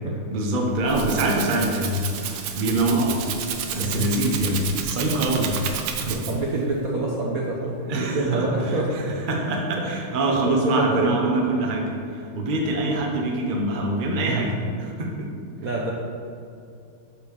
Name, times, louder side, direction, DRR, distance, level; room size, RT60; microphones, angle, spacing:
voice 1, 0.3-2.0 2.2-3.2 3.7-6.1 7.9-8.8 9.3-14.5 14.8-15.3, right 1 dB, 30° right, 0 dB, 1.0 m, -24 dB
Rattle (instrument), 0.6-6.6, right 7 dB, 85° right, 1.6 m, -31 dB
voice 2, 3.6-4.1 6.0-8.9 10.5-11.2 14.2-14.5 15.6-15.9, right 2 dB, 50° right, -2 dB, 1.2 m, -26 dB
8.2 x 5.2 x 6.9 m, 2.5 s
omnidirectional pair, 2.3 m